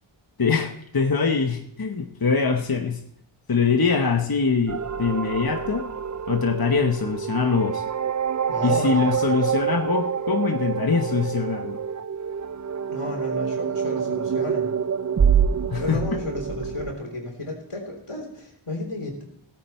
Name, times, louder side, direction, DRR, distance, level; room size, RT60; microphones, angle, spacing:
voice 1, 0.4-3.0 3.5-5.9 6.3-7.8 8.6-11.9 15.7-16.0, left 5 dB, 45° left, 4 dB, 1.0 m, -23 dB
sound 1, 4.7-17.0, right 7 dB, 40° right, 0.4 m, -26 dB
voice 2, 8.5-9.2 12.9-14.7 15.7-19.2, left 2 dB, 90° left, 1 dB, 3.5 m, -33 dB
17.0 x 9.0 x 4.3 m, 0.70 s
wide cardioid pair, 40°, 50 cm